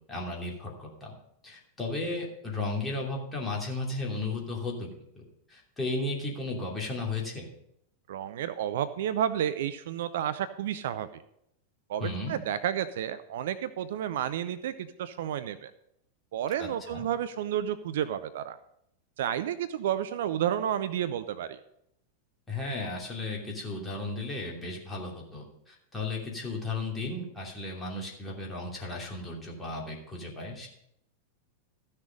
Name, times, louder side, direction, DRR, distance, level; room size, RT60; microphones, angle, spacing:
voice 1, 0.1-1.2 1.4-4.9 5.2-5.3 5.5-7.5 12.0-12.3 16.6-17.0 22.5-30.7, left 2 dB, 15° left, -2 dB, 2.9 m, -35 dB
voice 2, 8.1-11.1 11.9-15.7 16.3-18.6 19.2-21.6, right 10 dB, 55° right, 13 dB, 0.5 m, -31 dB
14.0 x 6.5 x 5.3 m, 0.76 s
figure-of-eight pair, 90°, 0 cm